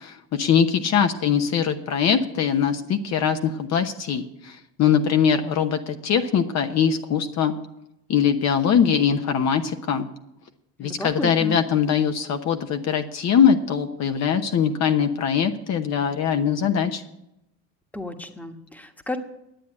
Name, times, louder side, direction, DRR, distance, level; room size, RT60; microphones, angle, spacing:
voice 1, 0.0-7.6 8.1-10.1 10.8-17.0, left 7 dB, 50° left, 6 dB, 1.0 m, -22 dB
voice 2, 10.8-11.6 17.9-19.2, left 1 dB, 5° left, 6 dB, 1.3 m, -32 dB
10.0 x 8.1 x 8.8 m, 0.85 s
supercardioid pair, 95°, 34 cm